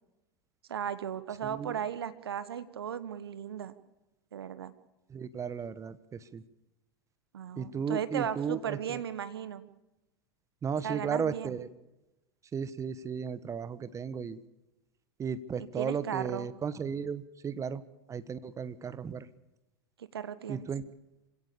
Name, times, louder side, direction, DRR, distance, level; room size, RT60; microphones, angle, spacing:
voice 1, 0.7-3.7 4.3-4.7 7.3-9.7 10.8-11.6 15.8-16.5 20.0-20.7, right 9 dB, 75° right, 13 dB, 1.3 m, -36 dB
voice 2, 1.4-1.8 5.1-6.4 7.6-9.0 10.6-11.7 12.5-14.4 15.2-17.8 18.1-19.3 20.5-20.8, right 6 dB, 25° right, 15 dB, 1.3 m, -35 dB
26.5 x 17.5 x 6.9 m, 0.97 s
figure-of-eight pair, 90°, 13 cm